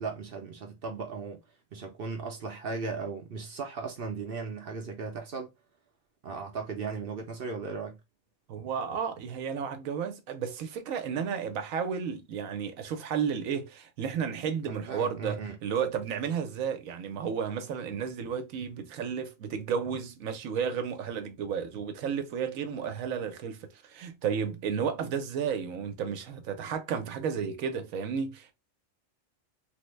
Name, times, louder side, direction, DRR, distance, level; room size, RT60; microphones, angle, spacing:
voice 1, 0.0-1.4 1.7-5.5 6.2-8.0 14.6-15.6, right 4 dB, 55° right, 0.7 m, -37 dB
voice 2, 8.5-28.5, right 7 dB, 85° right, 1.1 m, -32 dB
3.3 x 2.1 x 3.1 m
omnidirectional pair, 1.4 m